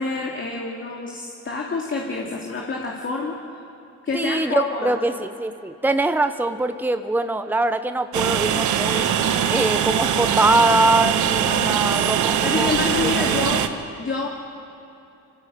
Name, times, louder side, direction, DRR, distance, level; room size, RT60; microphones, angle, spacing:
voice 1, 0.0-3.4 4.0-5.0 11.5-12.0 12.4-13.6 14.0-14.3, left 3 dB, 40° left, -1 dB, 2.7 m, -27 dB
voice 2, 4.1-12.7 13.2-13.5, right 2 dB, 5° right, 8 dB, 0.9 m, -23 dB
Train, 8.1-13.7, right 8 dB, 75° right, 1.3 m, -21 dB
25.0 x 15.5 x 8.6 m, 2.7 s
cardioid pair, 90°, 30 cm